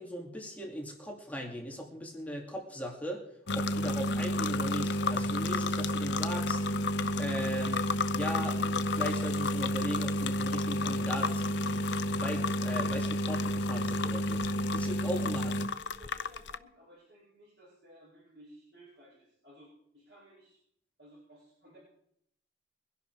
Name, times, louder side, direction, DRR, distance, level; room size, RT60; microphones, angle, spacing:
voice 1, 0.0-3.2 3.5-6.6 7.2-7.8 8.1-14.4 14.7-15.5, equal, 10° left, 0 dB, 2.6 m, -39 dB
sound 1, 3.5-16.6, left 1 dB, 70° left, 0.7 m, -30 dB
voice 2, 15.0-20.6 21.0-21.8, equal, 65° right, -6 dB, 7.7 m, -57 dB
23.0 x 11.0 x 4.8 m, 0.72 s
head